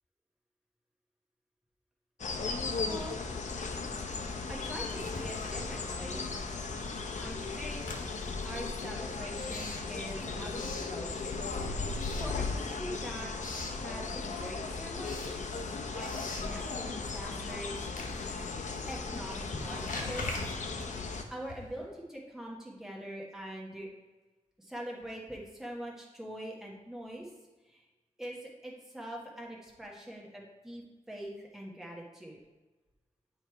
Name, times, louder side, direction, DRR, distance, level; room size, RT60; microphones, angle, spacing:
sound 1, 2.2-21.2, left 4 dB, 65° left, 0.6 m, -37 dB
voice 1, 4.5-6.3 7.2-8.0 8.4-11.5 12.2-13.3 13.7-18.2 18.9-20.6 21.3-23.9 24.6-27.3 27.6-27.8 28.2-32.4, right 1 dB, 5° right, -3 dB, 1.2 m, -43 dB
Writing, 4.8-6.4 6.7-11.5 11.9-12.9 13.2-13.8 14.3-21.9, left 2 dB, 85° left, 1.0 m, -44 dB
sound 2, 8.1-9.3 12.1-13.1 15.6-17.3, left 2 dB, 35° left, 2.0 m, -50 dB
9.0 x 3.1 x 4.6 m, 1.2 s
wide cardioid pair, 125°, 13 cm